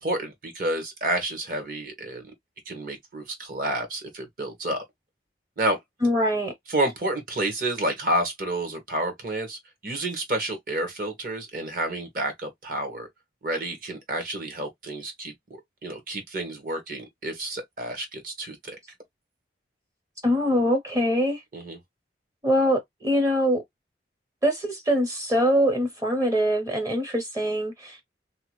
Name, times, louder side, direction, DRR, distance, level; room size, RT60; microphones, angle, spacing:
voice 1, 0.0-2.2 2.7-4.8 5.6-5.8 6.7-13.1 13.4-18.8 21.5-21.8, right 1 dB, 50° right, 1.0 m, -30 dB
voice 2, 6.0-6.5 20.2-21.4 22.4-23.6 24.4-28.0, equal, 20° right, 0.6 m, -23 dB
2.8 x 2.2 x 2.9 m
head